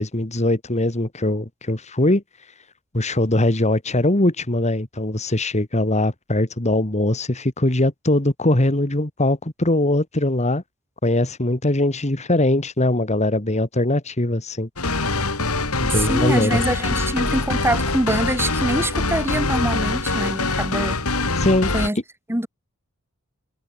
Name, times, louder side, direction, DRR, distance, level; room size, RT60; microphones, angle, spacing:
voice 1, 0.0-2.2 2.9-10.6 11.0-14.7 15.8-16.6 21.4-21.7, left 1 dB, 30° left, 2.3 m, -21 dB
sound 1, 14.8-21.9, left 3 dB, 90° left, 5.3 m, -23 dB
voice 2, 15.9-21.0 21.7-22.0 22.3-22.5, right 1 dB, 10° right, 3.2 m, -24 dB
head